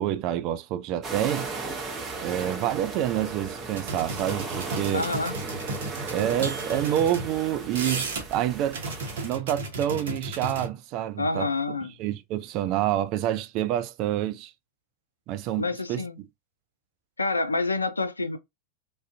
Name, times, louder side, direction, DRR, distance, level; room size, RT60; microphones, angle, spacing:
voice 1, 0.0-1.5 2.2-5.1 6.1-8.8 9.2-11.5 12.0-14.5 15.3-15.6 15.9-16.0, right 12 dB, 40° right, 0.3 m, -27 dB
sound 1, 1.0-9.3, right 3 dB, 25° right, 0.7 m, -36 dB
sound 2, 3.8-7.3 7.6-8.4 8.7-10.7, right 3 dB, 60° right, 0.8 m, -34 dB
voice 2, 4.9-5.4 11.2-11.9 15.6-16.2 17.2-18.4, left 3 dB, 80° left, 0.4 m, -27 dB
2.4 x 2.1 x 2.5 m
figure-of-eight pair, 90°, 0 cm